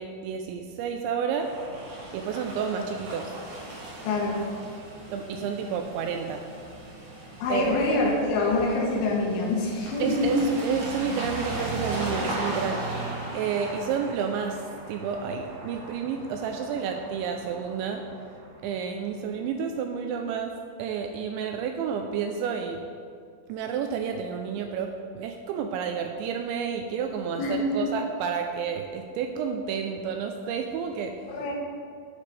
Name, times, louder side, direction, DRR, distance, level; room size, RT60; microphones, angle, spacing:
voice 1, 0.0-1.5 2.1-3.3 5.1-6.4 7.5-7.8 10.0-12.8 13.3-18.0 18.6-20.5 20.8-22.8 23.5-31.1, right 6 dB, 85° right, 4 dB, 2.6 m, -30 dB
sound 1, 1.4-19.0, right 2 dB, 55° right, 2.8 m, -37 dB
voice 2, 4.1-4.4 7.4-10.4 27.4-27.8 31.3-31.5, left 2 dB, 80° left, -3 dB, 3.4 m, -25 dB
11.5 x 8.4 x 3.3 m, 2.3 s
omnidirectional pair, 5.7 m